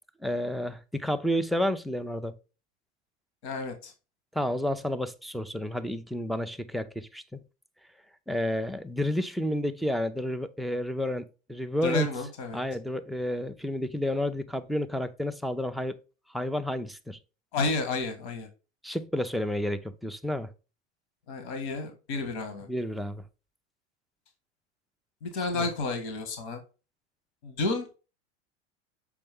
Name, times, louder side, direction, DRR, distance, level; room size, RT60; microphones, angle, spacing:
voice 1, 0.2-2.3 4.3-7.4 8.3-12.1 12.5-15.9 16.3-17.2 18.8-20.5 22.7-23.2 25.6-25.7, left 1 dB, ahead, 0.4 m, -30 dB
voice 2, 3.4-3.9 11.8-12.6 17.5-18.5 21.3-22.7 25.2-26.6 27.4-28.0, left 3 dB, 65° left, 1.8 m, -31 dB
7.0 x 5.3 x 3.5 m
hypercardioid pair, 85°, 35 cm